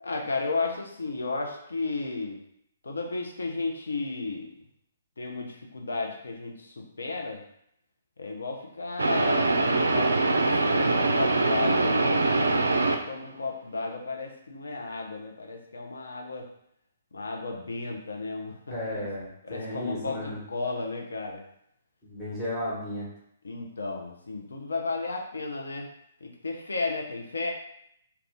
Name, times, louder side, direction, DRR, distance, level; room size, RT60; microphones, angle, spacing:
voice 1, 0.0-2.4 2.8-4.6 5.2-7.4 8.2-16.5 17.1-19.0 19.4-21.4 23.4-25.9 26.2-27.5, left 3 dB, 70° left, 1 dB, 0.6 m, -34 dB
sound 1, 9.0-13.2, right 2 dB, 70° right, 0.3 m, -23 dB
voice 2, 18.7-20.4 22.0-23.1, left 1 dB, 10° left, -9 dB, 1.1 m, -33 dB
2.5 x 2.3 x 3.4 m, 0.72 s
figure-of-eight pair, 125°, 0 cm